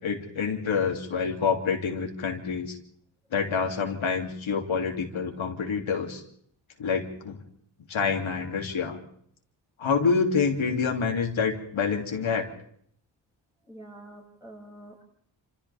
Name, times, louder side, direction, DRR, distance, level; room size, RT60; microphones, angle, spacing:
voice 1, 0.0-2.8 3.3-6.2 6.8-7.4 7.9-9.0 9.8-12.5, left 5 dB, 80° left, 1 dB, 3.2 m, -27 dB
voice 2, 13.6-15.0, right 1 dB, 5° right, -4 dB, 7.0 m, -46 dB
29.0 x 27.5 x 3.6 m, 0.65 s
wide cardioid pair, 145°, 47 cm